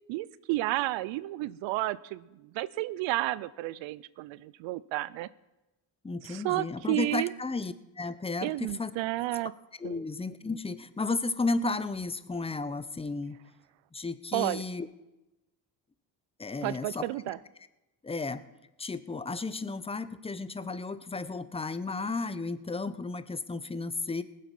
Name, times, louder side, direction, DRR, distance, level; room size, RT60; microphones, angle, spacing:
voice 1, 0.1-5.3 6.2-7.3 8.4-9.5 9.8-10.0 14.3-14.6 16.6-17.4, right 17 dB, 80° right, 17 dB, 0.5 m, -32 dB
voice 2, 6.0-8.9 9.8-13.4 13.9-14.9 16.4-17.1 18.0-18.4 18.8-24.2, left 3 dB, 15° left, 14 dB, 0.7 m, -33 dB
19.5 x 7.6 x 5.4 m, 0.99 s
supercardioid pair, 80°, 45 cm